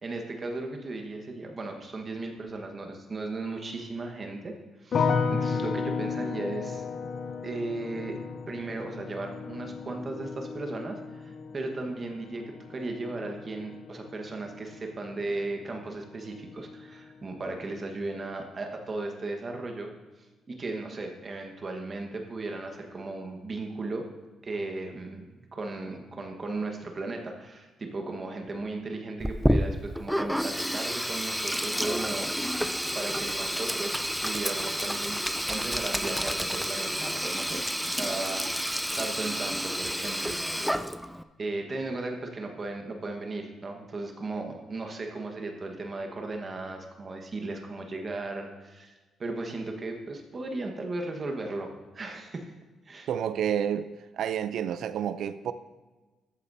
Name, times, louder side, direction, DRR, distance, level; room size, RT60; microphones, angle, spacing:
voice 1, 0.0-4.6 4.8-6.8 7.4-8.2 8.5-19.9 20.5-24.1 24.4-32.3 32.6-35.2 35.5-37.6 37.9-40.8 41.4-48.9 49.2-52.5 52.8-53.1, right 2 dB, 35° right, 3 dB, 1.4 m, -36 dB
sound 1, 4.9-16.0 16.3-17.0, left 5 dB, 50° left, 0.6 m, -34 dB
Sink (filling or washing), 29.2-41.2, equal, ahead, 0.3 m, -30 dB
voice 2, 53.1-53.9 54.1-55.5, right 9 dB, 75° right, 13 dB, 0.5 m, -29 dB
14.0 x 8.4 x 2.7 m, 1.2 s
cardioid pair, 115°, 0 cm